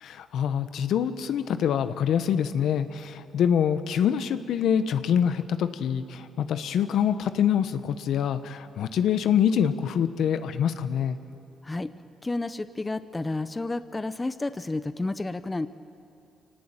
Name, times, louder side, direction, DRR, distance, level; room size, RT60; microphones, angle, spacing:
voice 1, 0.0-11.2, left 8 dB, 75° left, 11 dB, 1.0 m, -25 dB
voice 2, 12.2-15.7, left 2 dB, 20° left, 12 dB, 0.7 m, -31 dB
25.0 x 18.0 x 8.9 m, 2.5 s
cardioid pair, 90°, 0 cm